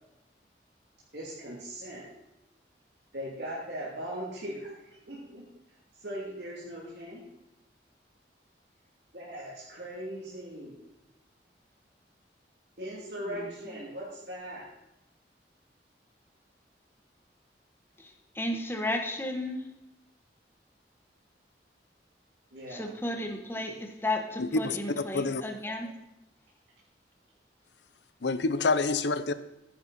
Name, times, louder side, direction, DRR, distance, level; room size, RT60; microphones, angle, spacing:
voice 1, 1.1-2.0 3.1-4.7 5.1-5.4 6.0-7.2 9.1-10.7 12.8-14.7 22.5-22.9, equal, 75° right, -6 dB, 3.0 m, -39 dB
voice 2, 13.3-13.8 18.0-19.6 22.7-25.9, left 1 dB, 15° left, 3 dB, 1.3 m, -34 dB
voice 3, 24.4-25.4 28.2-29.3, left 3 dB, 85° left, 13 dB, 0.7 m, -27 dB
14.0 x 10.0 x 4.3 m, 0.90 s
head